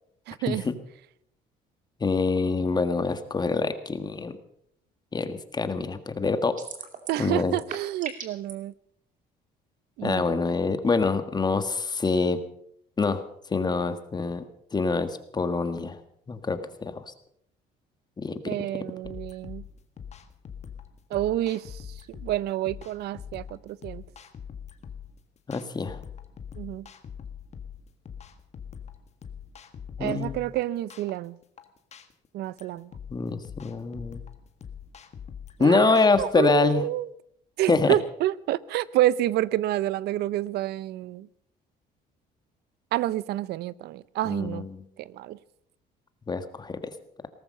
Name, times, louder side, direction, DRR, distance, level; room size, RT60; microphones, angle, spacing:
voice 1, 0.3-0.6 7.1-8.7 10.0-10.3 18.5-19.6 21.1-21.8 22.1-24.0 26.6-26.9 30.0-31.4 32.3-32.9 35.6-37.1 37.6-41.3 42.9-44.7 45.0-45.4, right 14 dB, 75° right, 20 dB, 0.6 m, -28 dB
voice 2, 2.0-4.4 5.1-6.5 7.2-7.6 10.0-12.4 13.0-14.4 14.7-16.0 16.3-17.1 18.2-18.8 25.5-26.0 30.0-30.4 33.1-34.2 35.6-36.8 37.7-38.0 44.2-44.8 46.3-46.9, left 4 dB, 25° left, 10 dB, 1.6 m, -25 dB
sound 1, 6.6-7.2 7.5-8.5, right 6 dB, 50° right, 2.6 m, -37 dB
sound 2, 19.0-36.2, left 7 dB, 40° left, 1.6 m, -43 dB
18.0 x 14.5 x 5.5 m, 0.71 s
cardioid pair, 110°, 17 cm